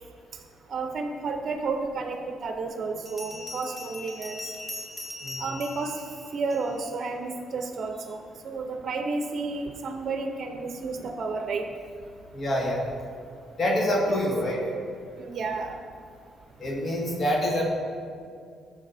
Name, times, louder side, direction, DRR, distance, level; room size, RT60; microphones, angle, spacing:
voice 1, 0.7-4.4 5.4-5.9 6.3-11.6 14.1-14.2 15.2-15.8, right 4 dB, 50° right, 4 dB, 0.7 m, -31 dB
Bell, 1.8-1.9 3.1-6.9, left 2 dB, 15° left, 1.6 m, -40 dB
voice 2, 12.3-12.8 13.6-14.6 16.6-17.7, equal, 45° left, -2 dB, 1.8 m, -26 dB
12.0 x 7.4 x 2.7 m, 2.2 s
cardioid pair, 90°, 0 cm